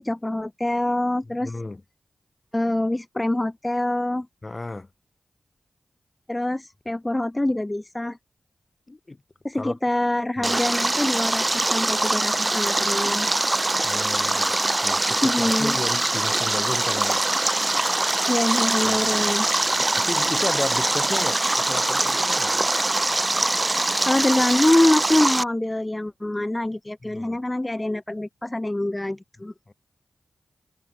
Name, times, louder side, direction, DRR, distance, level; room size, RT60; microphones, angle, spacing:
voice 1, 0.0-1.5 2.5-4.3 6.3-8.2 9.4-13.3 15.2-15.8 18.3-19.5 24.1-29.5, left 1 dB, 20° left, 0.9 m, -25 dB
voice 2, 1.2-1.8 4.4-4.9 8.9-9.2 9.5-9.7 10.4-10.6 13.8-14.6 14.8-17.3 18.9-19.3 19.8-22.7 27.0-27.4 29.7-29.8, left 2 dB, 35° left, 5.2 m, -33 dB
Stream, 10.4-25.4, right 2 dB, 30° right, 0.8 m, -23 dB
cardioid pair, 40°, 0 cm